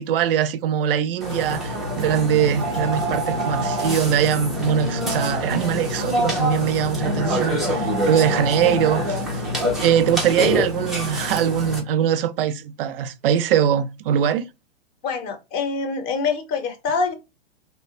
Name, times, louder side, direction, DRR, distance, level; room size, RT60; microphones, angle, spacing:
voice 1, 0.0-9.5 9.8-14.5, right 9 dB, 65° right, 0.5 m, -22 dB
Burping eructation, 1.2-11.8, equal, ahead, 0.3 m, -25 dB
voice 2, 15.0-17.1, left 4 dB, 30° left, 0.7 m, -25 dB
2.8 x 2.1 x 2.5 m
hypercardioid pair, 120°, 31 cm